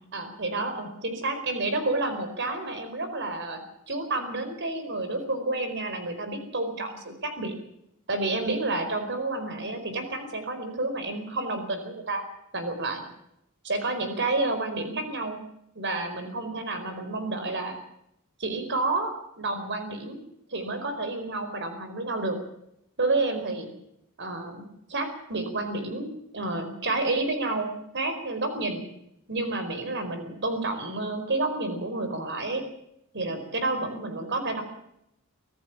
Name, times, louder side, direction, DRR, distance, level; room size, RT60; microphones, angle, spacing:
voice 1, 0.1-3.6 3.9-7.5 8.1-12.2 12.5-13.0 13.6-15.4 15.7-17.8 18.4-20.2 20.5-22.4 23.0-23.7 24.2-28.8 29.3-32.6 33.1-34.6, right 2 dB, 55° right, 8 dB, 4.7 m, -30 dB
25.0 x 15.0 x 7.3 m, 0.78 s
head